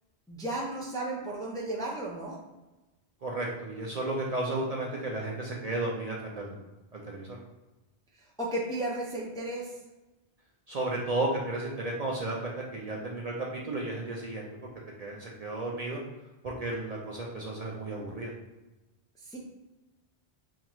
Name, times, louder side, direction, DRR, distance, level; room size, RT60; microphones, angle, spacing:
voice 1, 0.3-2.4 8.4-9.7 19.2-19.4, right 1 dB, 5° left, -3 dB, 0.4 m, -34 dB
voice 2, 3.2-6.6 6.9-7.4 10.7-14.7 15.0-16.0 16.4-18.3, right 2 dB, 50° right, -3 dB, 0.5 m, -33 dB
4.5 x 2.4 x 3.0 m, 1.1 s
omnidirectional pair, 1.1 m